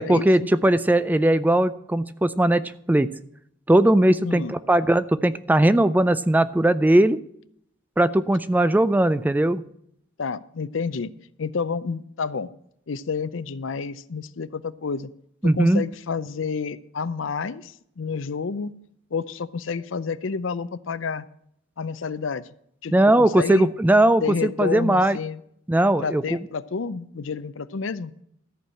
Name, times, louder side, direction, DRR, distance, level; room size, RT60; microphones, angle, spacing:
voice 1, 0.0-3.1 3.7-7.2 8.0-9.6 15.4-15.8 22.9-25.2 25.7-26.2, right 1 dB, 10° right, 15 dB, 0.3 m, -19 dB
voice 2, 4.2-4.5 10.2-11.1 11.4-12.5 12.9-15.1 15.4-18.7 19.1-21.3 21.8-22.4 22.8-23.7 24.2-25.4 26.0-28.1, left 5 dB, 70° left, 16 dB, 0.6 m, -29 dB
14.0 x 4.7 x 8.8 m, 0.71 s
head